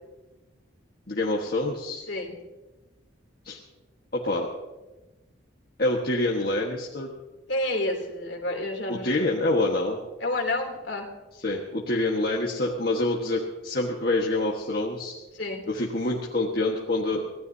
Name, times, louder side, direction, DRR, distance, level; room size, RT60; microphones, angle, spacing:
voice 1, 1.1-2.0 3.4-3.6 4.1-4.5 5.8-7.1 8.9-10.0 11.4-15.1 15.7-17.2, left 2 dB, 50° left, -2 dB, 1.5 m, -26 dB
voice 2, 2.1-2.4 7.5-9.3 10.2-11.1 15.3-15.6, left 1 dB, 65° left, 2 dB, 3.1 m, -29 dB
25.0 x 17.0 x 2.8 m, 1.1 s
head